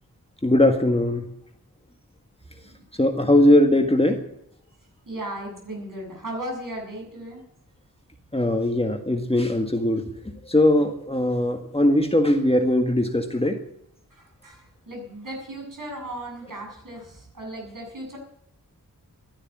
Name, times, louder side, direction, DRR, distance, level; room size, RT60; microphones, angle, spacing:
voice 1, 0.4-1.2 3.0-4.2 8.3-10.0 10.5-13.6, left 1 dB, 15° left, 5 dB, 1.7 m, -20 dB
voice 2, 5.1-7.4 14.1-18.2, right 1 dB, 60° right, 0 dB, 7.6 m, -36 dB
13.0 x 11.5 x 9.4 m, 0.74 s
wide cardioid pair, 80°, 36 cm